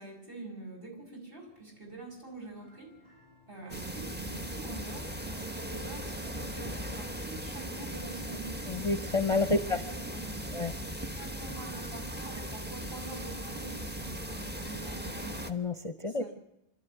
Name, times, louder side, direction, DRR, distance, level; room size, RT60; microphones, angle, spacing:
voice 1, 0.0-2.9 3.5-8.5 9.4-10.5 10.8-15.4 16.1-16.3, right 3 dB, 55° right, 1 dB, 6.8 m, -45 dB
sound 1, 1.5-11.9, right 2 dB, 40° right, 6.8 m, -58 dB
sound 2, 3.7-15.5, equal, 10° right, 1.1 m, -38 dB
voice 2, 8.7-9.8 10.5-10.7 15.5-16.2, left 3 dB, 30° left, 9 dB, 0.9 m, -29 dB
26.0 x 12.5 x 9.2 m, 0.85 s
omnidirectional pair, 1.1 m